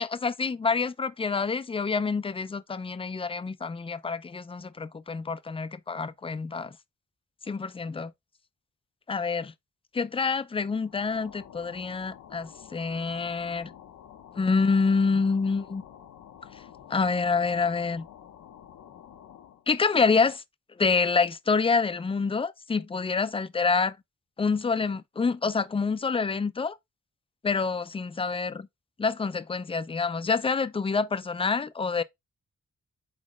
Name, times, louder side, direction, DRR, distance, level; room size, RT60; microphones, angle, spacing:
voice 1, 0.0-6.8 7.5-8.1 9.1-9.5 9.9-13.7 14.4-15.8 16.5-16.6 16.9-18.1 19.7-20.4 20.8-24.0 24.4-26.8 27.4-28.7 29.0-32.0, left 4 dB, 20° left, 0.4 m, -27 dB
sound 1, 10.8-19.7, left 9 dB, 80° left, 0.7 m, -49 dB
4.2 x 4.1 x 3.0 m
cardioid pair, 80°, 30 cm